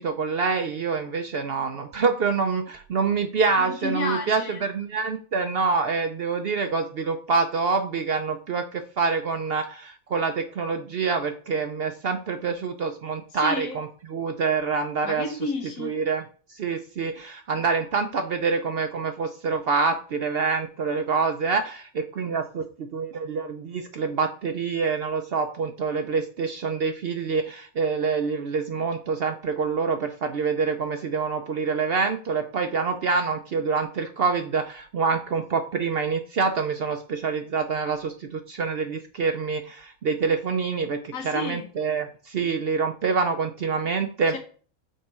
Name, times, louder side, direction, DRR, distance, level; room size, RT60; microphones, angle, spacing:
voice 1, 0.0-15.3 15.8-16.2 16.5-44.4, right 5 dB, 60° right, 7 dB, 0.6 m, -26 dB
voice 2, 3.6-4.7 13.3-13.8 15.0-16.0 41.1-41.7 44.3-44.4, left 3 dB, 75° left, 4 dB, 1.6 m, -31 dB
6.5 x 4.5 x 4.3 m, 0.42 s
omnidirectional pair, 1.5 m